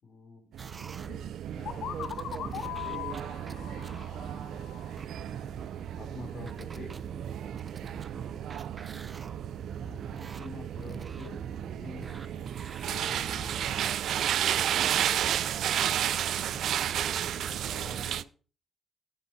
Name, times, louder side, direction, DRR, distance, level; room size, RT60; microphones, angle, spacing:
voice 1, 0.0-0.5 1.1-2.0 5.9-7.0 9.8-11.4 11.7-13.8 16.3-18.3, left 3 dB, 45° left, 2 dB, 4.2 m, -47 dB
sound 1, 0.5-18.2, right 10 dB, 80° right, 0.4 m, -33 dB
sound 2, 0.6-16.1 16.5-18.2, right 5 dB, 30° right, 0.6 m, -45 dB
voice 2, 1.5-3.3 7.6-9.2, right 5 dB, 55° right, 4 dB, 2.3 m, -46 dB
sound 3, 1.7-5.4, left 11 dB, 85° left, 0.7 m, -40 dB
11.5 x 7.2 x 4.9 m, 0.38 s
cardioid pair, 145°, 0 cm